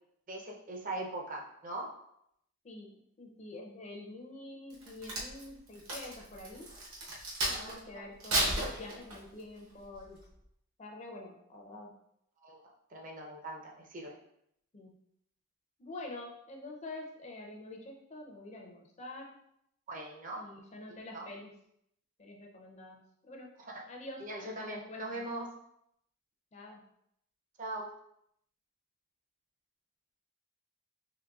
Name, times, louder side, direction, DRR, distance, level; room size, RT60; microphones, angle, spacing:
voice 1, 0.3-1.9 7.5-8.0 12.4-12.6 12.9-14.2 19.9-20.5 21.1-21.3 23.6-23.8 24.2-25.5 27.6-27.9, right 2 dB, 35° right, 0 dB, 0.5 m, -41 dB
voice 2, 2.6-6.7 7.4-10.2 10.8-11.9 14.7-15.0 15.8-19.4 20.4-21.5 22.2-23.0 23.3-23.5 23.9-25.3 26.5-26.8, left 2 dB, 30° left, 0 dB, 0.4 m, -47 dB
Crack, 4.7-7.8 8.2-9.4 9.9-10.2, right 1 dB, 65° right, 0.9 m, -34 dB
3.8 x 3.3 x 2.3 m, 0.75 s
head